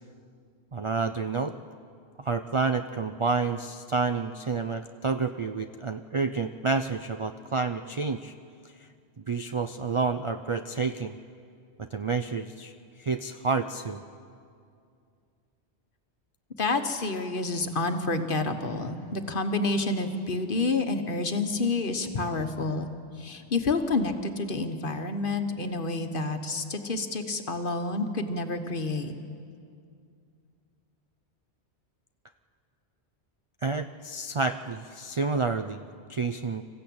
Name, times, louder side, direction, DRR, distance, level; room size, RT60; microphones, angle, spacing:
voice 1, 0.7-1.5 2.2-8.3 9.3-11.2 11.8-12.7 13.0-14.0 33.6-36.6, right 4 dB, 40° right, 8 dB, 0.4 m, -29 dB
voice 2, 16.6-22.9 23.2-29.1, left 3 dB, 50° left, 7 dB, 1.4 m, -29 dB
26.0 x 15.0 x 8.6 m, 2.4 s
omnidirectional pair, 1.1 m